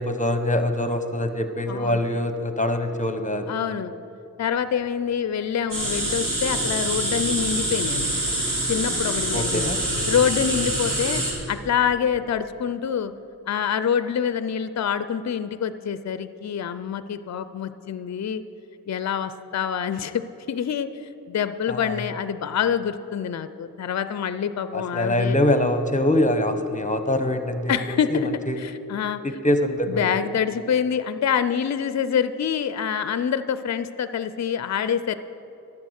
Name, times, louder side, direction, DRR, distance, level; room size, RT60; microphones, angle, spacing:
voice 1, 0.0-3.5 9.3-9.8 21.7-22.0 24.7-28.2 28.5-28.6 29.2-30.2, left 1 dB, 20° left, 8 dB, 0.9 m, -24 dB
voice 2, 1.7-2.1 3.5-3.9 4.4-8.2 8.7-9.7 10.1-13.1 13.5-18.4 18.9-20.9 21.3-25.4 27.7-28.3 28.6-29.2 29.9-35.2, left 8 dB, 50° left, 12 dB, 0.4 m, -26 dB
sound 1, 5.7-11.3, right 1 dB, 60° right, 2.7 m, -25 dB
12.0 x 7.5 x 6.4 m, 2.9 s
wide cardioid pair, 60°, 36 cm